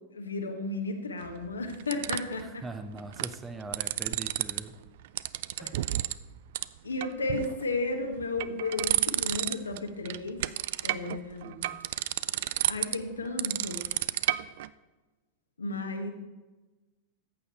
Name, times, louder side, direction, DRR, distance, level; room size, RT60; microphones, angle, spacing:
voice 1, 0.1-2.6 5.6-5.7 6.8-10.4 10.8-11.6 12.7-13.8 15.6-16.1, left 3 dB, 75° left, 4 dB, 1.4 m, -33 dB
sound 1, 1.2-2.4 3.0-3.3 3.6-4.6 4.9-6.2 6.5-6.6 7.0-7.6 8.1-9.8 10.0-14.7, right 14 dB, 55° right, 0.3 m, -30 dB
voice 2, 2.4-4.7 5.6-5.7, right 3 dB, 15° right, 8 dB, 1.0 m, -41 dB
14.0 x 8.6 x 4.2 m, 1.2 s
figure-of-eight pair, 90°, 0 cm